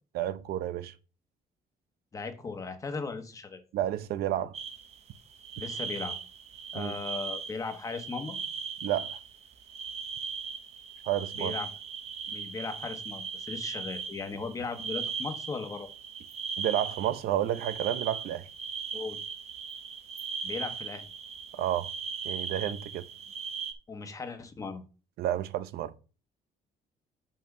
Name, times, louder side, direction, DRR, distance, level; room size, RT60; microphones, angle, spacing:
voice 1, 0.1-0.9 3.7-4.6 6.7-6.9 8.8-9.2 11.1-11.5 16.6-18.4 21.5-21.9 22.2-23.0 25.2-25.9, right 12 dB, 85° right, 0.7 m, -30 dB
voice 2, 2.1-3.6 5.6-6.2 6.7-8.4 11.3-11.7 12.3-15.9 18.9-19.2 20.4-21.1 23.9-24.8, left 4 dB, 20° left, 1.1 m, -37 dB
sound 1, 4.5-23.7, right 6 dB, 45° right, 0.8 m, -38 dB
5.9 x 4.6 x 6.6 m
cardioid pair, 180°, 16 cm